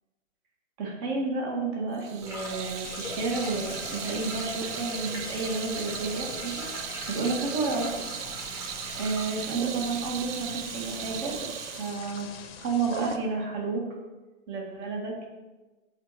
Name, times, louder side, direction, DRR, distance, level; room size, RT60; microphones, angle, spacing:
voice 1, 0.8-7.9 9.0-11.3 11.8-12.3 12.6-13.8 14.5-15.1, right 3 dB, 35° right, 0 dB, 1.8 m, -31 dB
Water tap faucet / Sink (filling or washing), 2.0-13.3, right 10 dB, 60° right, 0.5 m, -38 dB
sound 1, 2.2-11.4, equal, 5° right, 1.3 m, -41 dB
sound 2, 2.8-13.2, left 7 dB, 45° left, 1.0 m, -45 dB
7.8 x 4.3 x 4.9 m, 1.2 s
hypercardioid pair, 135°, 40 cm